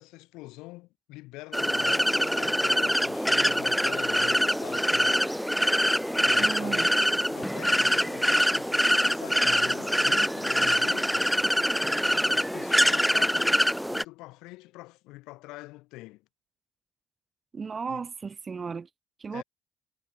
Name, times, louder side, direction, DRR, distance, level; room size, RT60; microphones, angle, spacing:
voice 1, 0.0-5.4 6.2-7.0 7.3-11.3 12.0-16.2 17.9-18.0 19.3-19.4, left 21 dB, 80° left, 6.2 m, -45 dB
sound 1, 1.5-14.0, equal, ahead, 0.8 m, -24 dB
voice 2, 6.4-6.9 17.5-18.9 19.2-19.4, right 5 dB, 35° right, 2.9 m, -34 dB
supercardioid pair, 70°, 0 cm